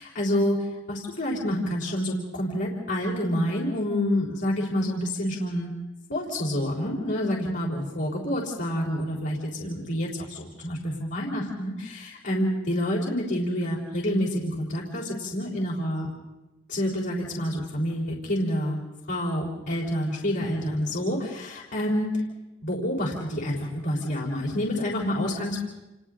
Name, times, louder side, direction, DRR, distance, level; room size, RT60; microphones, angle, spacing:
voice 1, 0.0-5.7 6.1-16.1 16.7-18.8 19.1-22.2 22.6-25.7, equal, 60° left, -6 dB, 3.9 m, -28 dB
29.5 x 28.5 x 3.8 m, 1.0 s
head